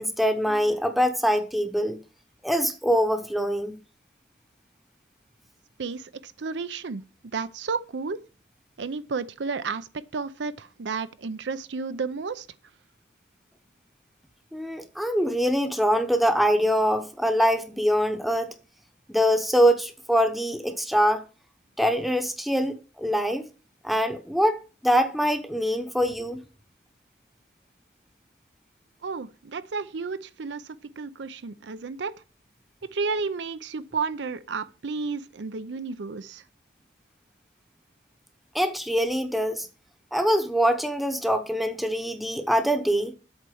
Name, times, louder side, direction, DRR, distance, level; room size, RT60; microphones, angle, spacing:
voice 1, 0.0-2.0 2.4-3.8 14.5-18.5 19.1-21.2 21.8-23.4 23.8-26.4 38.5-39.7 40.1-43.1, equal, ahead, 0.8 m, -24 dB
voice 2, 5.8-7.0 7.3-8.2 8.8-12.5 29.0-30.6 31.0-32.1 32.9-36.4, right 4 dB, 80° right, 0.6 m, -32 dB
8.1 x 4.4 x 6.9 m
head